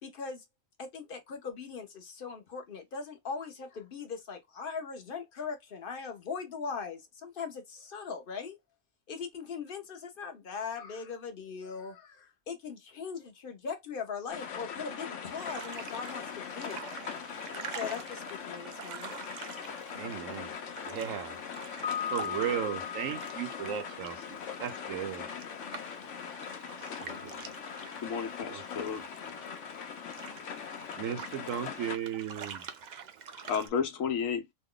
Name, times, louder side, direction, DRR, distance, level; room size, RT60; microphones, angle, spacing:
voice 1, 0.0-0.4 0.8-8.6 9.1-16.9 17.7-19.1, left 5 dB, 50° left, 0.9 m, -40 dB
sound 1, 14.3-32.0, left 7 dB, 70° left, 1.0 m, -41 dB
sound 2, 15.4-33.7, right 7 dB, 65° right, 0.4 m, -47 dB
voice 2, 19.9-20.6 20.8-21.4 22.1-25.3 27.0-27.5 28.5-28.6 30.9-32.6, right 9 dB, 90° right, 1.1 m, -36 dB
Piano, 21.8-24.7, left 8 dB, 10° left, 0.4 m, -38 dB
voice 3, 28.0-29.0 33.4-34.4, left 7 dB, 90° left, 1.2 m, -32 dB
3.0 x 2.2 x 3.7 m
omnidirectional pair, 1.3 m